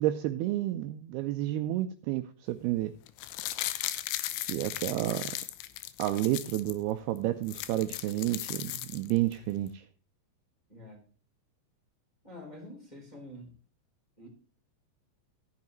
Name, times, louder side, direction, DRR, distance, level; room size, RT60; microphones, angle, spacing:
voice 1, 0.0-2.9 4.5-5.4 6.0-9.8, right 14 dB, 80° right, 8 dB, 2.4 m, -30 dB
sound 1, 3.1-6.8 7.2-7.3 7.4-9.3 9.7-9.8, left 14 dB, 85° left, 3.1 m, -37 dB
voice 2, 10.7-11.0 12.2-13.5 14.2-14.3, left 1 dB, 10° left, -2 dB, 3.5 m, -47 dB
14.5 x 9.5 x 3.1 m, 0.40 s
omnidirectional pair, 5.0 m